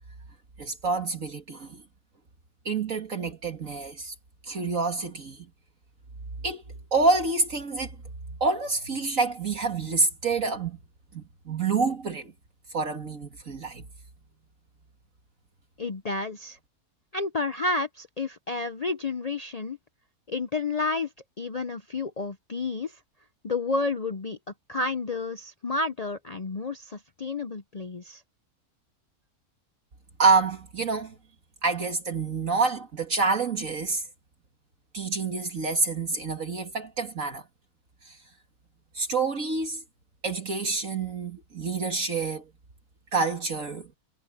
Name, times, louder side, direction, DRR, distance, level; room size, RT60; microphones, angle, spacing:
voice 1, 0.6-1.8 2.7-4.1 4.5-5.5 6.4-6.6 6.9-7.9 8.4-10.8 11.1-12.3 12.7-13.9 30.2-31.1 31.6-34.0 34.9-37.4 38.1-38.2 38.9-39.8 40.2-42.4 43.1-43.9, right 4 dB, 55° right, 2.3 m, -27 dB
voice 2, 15.8-16.6 17.1-19.8 20.3-21.1 21.4-22.9 23.4-24.4 24.7-28.2, left 3 dB, 60° left, 0.4 m, -30 dB
omnidirectional pair, 1.6 m